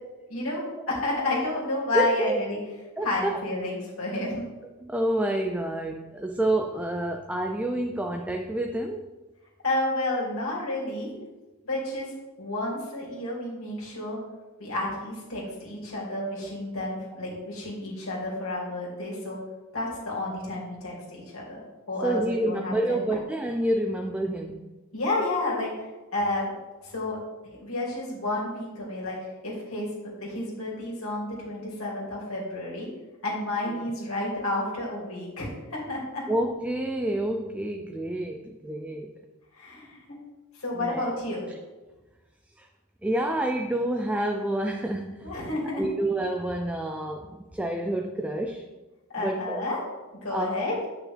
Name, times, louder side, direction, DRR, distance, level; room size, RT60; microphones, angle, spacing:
voice 1, 0.3-2.6 3.0-4.4 9.6-11.1 11.6-12.1 12.4-14.2 14.6-19.4 19.7-23.0 24.9-25.9 26.1-26.5 26.8-27.2 27.5-29.2 29.4-32.9 33.2-36.2 39.5-40.2 40.6-41.5 45.2-45.8 49.1-49.8 50.2-50.7, left 2 dB, 70° left, -4 dB, 2.6 m, -31 dB
voice 2, 1.9-2.4 3.0-3.4 4.2-4.4 4.8-9.1 22.0-24.6 36.3-39.1 40.7-41.0 42.6-42.7 43.0-45.3 45.7-48.7 49.2-49.7 50.3-50.6, right 1 dB, 5° right, 2 dB, 0.4 m, -28 dB
9.2 x 5.9 x 3.4 m, 1.2 s
head